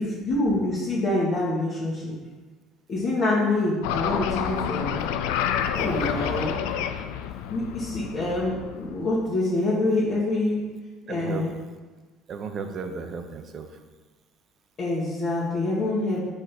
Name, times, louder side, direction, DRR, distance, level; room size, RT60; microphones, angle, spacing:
voice 1, 0.0-2.1 2.9-5.0 5.7-6.6 7.5-10.6 11.1-11.6 14.8-16.3, left 2 dB, 45° left, -9 dB, 1.6 m, -26 dB
sound 1, 3.8-9.2, left 9 dB, 65° left, 0.3 m, -29 dB
voice 2, 11.1-11.5 12.3-13.7, right 5 dB, 45° right, 6 dB, 0.6 m, -35 dB
5.3 x 4.1 x 4.4 m, 1.3 s
figure-of-eight pair, 60°, 0 cm